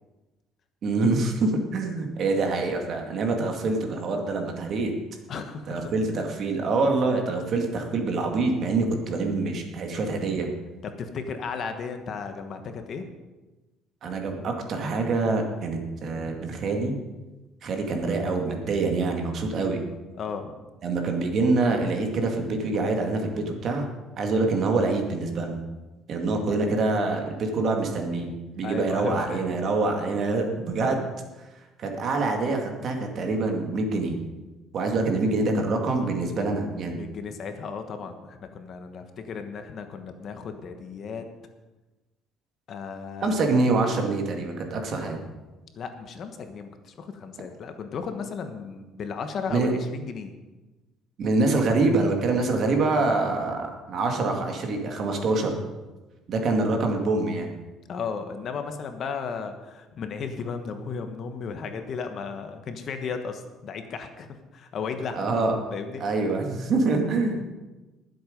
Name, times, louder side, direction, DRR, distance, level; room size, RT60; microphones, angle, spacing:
voice 1, 0.8-4.9 5.7-10.5 14.0-16.9 17.6-19.8 20.8-23.9 24.2-25.6 26.1-31.1 31.8-34.2 34.7-37.0 43.2-45.2 49.5-49.7 51.2-55.6 56.3-57.5 65.1-65.6 66.0-67.4, right 3 dB, 45° right, 3 dB, 2.1 m, -25 dB
voice 2, 5.3-6.3 10.8-13.1 20.2-20.5 28.6-29.4 36.4-36.5 37.0-41.2 42.7-43.4 45.7-50.3 57.9-65.3 65.7-66.0, left 5 dB, 40° left, 7 dB, 1.2 m, -35 dB
20.0 x 7.9 x 5.2 m, 1.1 s
cardioid pair, 160°, 0 cm